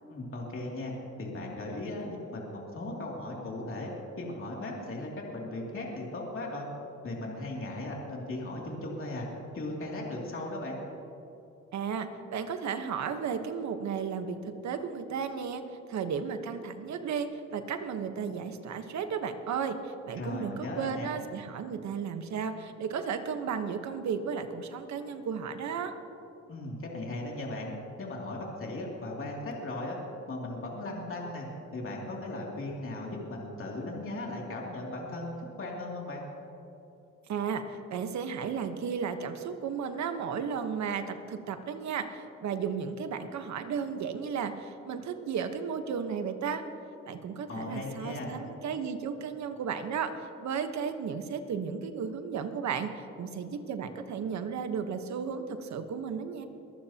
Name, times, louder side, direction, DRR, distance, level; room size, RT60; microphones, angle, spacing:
voice 1, 0.1-0.9 1.2-3.9 4.2-6.7 7.0-9.3 9.5-10.8 20.1-21.1 26.5-27.7 28.0-30.0 30.3-31.5 31.7-35.3 35.6-36.2 47.5-48.4, left 2 dB, 45° left, -2 dB, 2.8 m, -37 dB
voice 2, 11.7-15.6 15.9-25.9 37.3-46.6 47.0-56.5, right 6 dB, 65° right, 7 dB, 1.2 m, -34 dB
23.0 x 14.5 x 2.9 m, 2.8 s
cardioid pair, 90°, 30 cm